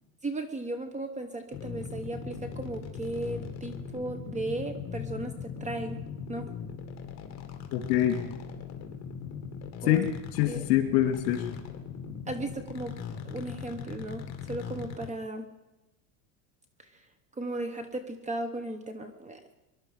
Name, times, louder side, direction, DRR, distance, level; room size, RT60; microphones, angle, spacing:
voice 1, 0.2-6.0 6.3-6.5 9.8-10.1 10.5-10.6 12.3-12.9 13.2-14.2 14.5-15.4 17.4-19.4, right 2 dB, 15° right, 8 dB, 1.0 m, -36 dB
sound 1, 1.5-15.1, left 7 dB, 35° left, 2.2 m, -39 dB
voice 2, 7.7-8.2 9.9-11.5, left 12 dB, 60° left, 6 dB, 2.6 m, -25 dB
23.5 x 11.5 x 5.0 m, 0.99 s
supercardioid pair, 135°, 48 cm